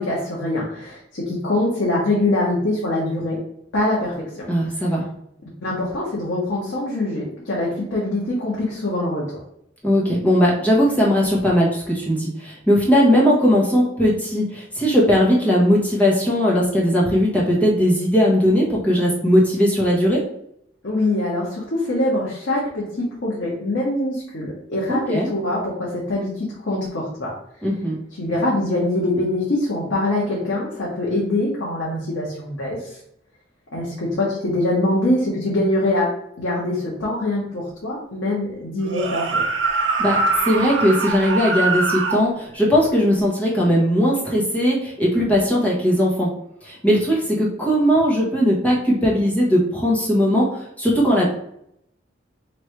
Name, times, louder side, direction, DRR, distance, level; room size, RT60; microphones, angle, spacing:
voice 1, 0.0-3.4 3.7-4.4 5.6-9.4 20.8-27.3 28.2-33.0 33.7-36.1 36.4-39.4, left 1 dB, 90° left, -5 dB, 1.0 m, -23 dB
voice 2, 4.5-5.1 9.8-20.2 24.9-25.3 27.6-28.0 40.0-46.3 46.6-51.2, equal, 10° left, -5 dB, 1.0 m, -18 dB
sound 1, 38.8-42.2, right 3 dB, 80° right, 0.6 m, -23 dB
3.2 x 2.6 x 4.3 m, 0.75 s
head